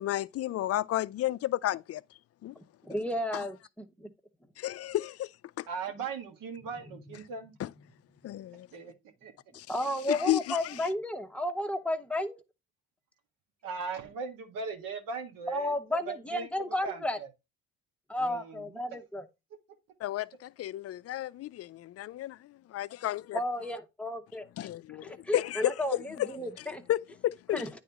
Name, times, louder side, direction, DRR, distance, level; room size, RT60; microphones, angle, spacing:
voice 1, 0.0-2.0 2.4-2.5 3.3-3.4 4.6-5.3 5.6-5.7 7.6-7.7 8.2-8.7 9.5-9.7 10.1-10.7 20.0-23.4 24.6-25.7 26.2-26.3 26.9-27.7, left 14 dB, 45° left, 0.4 m, -32 dB
voice 2, 2.6-4.1 9.7-12.4 15.5-17.2 18.1-19.2 23.3-24.5 24.9-26.8 27.5-27.7, left 1 dB, 5° left, 1.0 m, -33 dB
voice 3, 5.7-7.5 8.7-8.9 9.2-9.3 13.6-15.7 16.1-16.5 16.8-17.3 18.2-18.8, right 5 dB, 70° right, 1.8 m, -38 dB
9.2 x 4.0 x 3.5 m
supercardioid pair, 80°, 34 cm